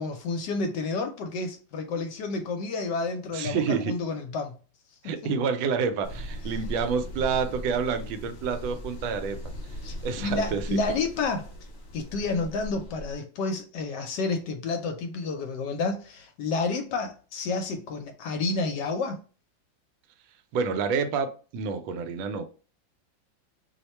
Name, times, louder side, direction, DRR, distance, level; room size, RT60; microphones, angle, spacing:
voice 1, 0.0-4.6 5.0-5.3 9.8-9.9 10.2-11.5 11.9-19.2, left 3 dB, 70° left, 1.1 m, -30 dB
voice 2, 3.3-3.9 5.0-9.4 10.0-10.7 20.5-22.5, right 5 dB, 90° right, 1.4 m, -28 dB
sound 1, 6.0-13.1, equal, 40° left, 1.2 m, -38 dB
3.1 x 2.1 x 4.1 m
omnidirectional pair, 2.1 m